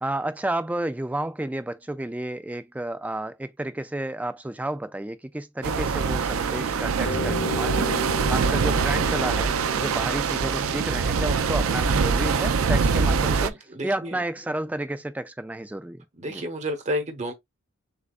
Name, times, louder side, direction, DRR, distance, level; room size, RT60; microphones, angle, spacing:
voice 1, 0.0-16.4, right 1 dB, 5° right, 0.3 m, -31 dB
sound 1, 5.6-13.5, right 5 dB, 80° right, 0.5 m, -24 dB
sound 2, 7.1-11.7, left 1 dB, 60° left, 1.3 m, -35 dB
voice 2, 13.2-14.2 16.2-17.3, equal, 35° right, 1.0 m, -31 dB
6.8 x 2.4 x 2.5 m
head